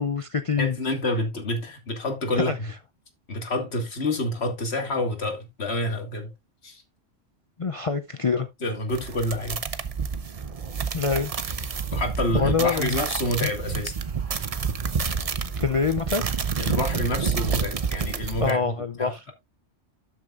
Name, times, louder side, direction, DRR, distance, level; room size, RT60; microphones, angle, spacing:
voice 1, 0.0-0.8 2.4-2.5 7.6-8.5 10.9-11.3 12.3-13.0 13.4-13.5 15.6-16.2 18.4-19.3, left 5 dB, 45° left, 0.4 m, -25 dB
voice 2, 0.6-2.7 3.3-6.3 6.6-6.8 8.4-9.6 11.9-13.9 16.6-19.3, left 1 dB, 60° left, 2.2 m, -28 dB
sound 1, 8.9-18.5, right 5 dB, 40° right, 0.6 m, -29 dB
12.5 x 6.4 x 2.5 m
omnidirectional pair, 1.2 m